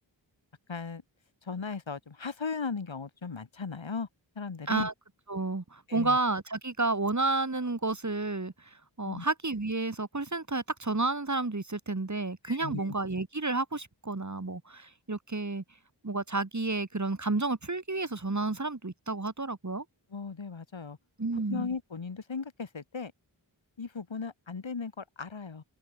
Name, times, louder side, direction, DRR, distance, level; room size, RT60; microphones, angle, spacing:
voice 1, 0.7-1.0 1.5-4.1 4.4-4.9 5.9-6.2 9.1-9.3 12.5-12.9 20.1-21.0 21.5-23.1 23.8-25.6, left 5 dB, 85° left, 7.0 m, -37 dB
voice 2, 5.3-8.5 9.0-15.6 16.0-19.8 21.2-21.7, right 3 dB, 40° right, 4.3 m, -31 dB
wide cardioid pair, 60°, 45 cm